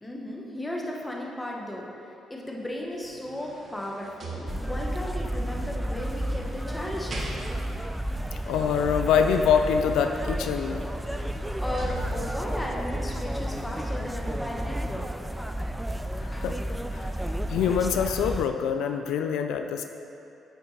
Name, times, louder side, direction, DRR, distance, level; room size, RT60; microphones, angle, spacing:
voice 1, 0.0-7.6 11.6-15.1 16.2-16.5, left 1 dB, 10° left, -2 dB, 1.2 m, -35 dB
sound 1, 2.8-5.1 5.9-7.9 10.1-10.2 10.6-12.6 13.2-13.3, right 2 dB, 45° right, 1.1 m, -42 dB
sound 2, 4.5-18.5, right 1 dB, 5° right, 0.3 m, -32 dB
voice 2, 8.5-10.9 16.2-16.6 16.9-19.8, left 7 dB, 85° left, 6 dB, 0.3 m, -25 dB
8.3 x 5.9 x 4.1 m, 2.7 s
cardioid pair, 90°, 0 cm